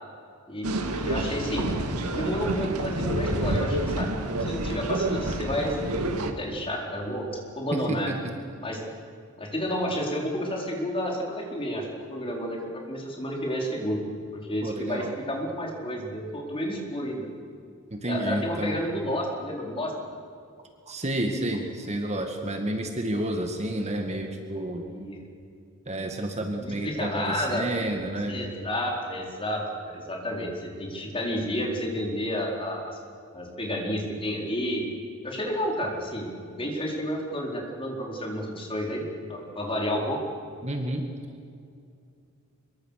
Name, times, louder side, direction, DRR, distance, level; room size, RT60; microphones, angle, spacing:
voice 1, 0.5-1.7 2.1-4.1 4.4-6.0 6.4-7.3 7.5-8.1 8.6-8.8 9.4-12.6 12.9-14.0 14.3-17.3 18.0-19.9 24.7-25.2 26.6-27.7 28.3-33.0 33.3-34.8 35.2-39.0 39.3-40.2, equal, 25° left, 0 dB, 4.4 m, -31 dB
sound 1, 0.6-6.3, right 1 dB, 85° right, 2.2 m, -28 dB
voice 2, 7.7-8.2 14.6-15.1 17.9-18.9 20.9-24.9 25.9-28.5 40.6-41.0, right 1 dB, 30° right, 4 dB, 2.0 m, -30 dB
25.0 x 23.0 x 6.7 m, 2.4 s
head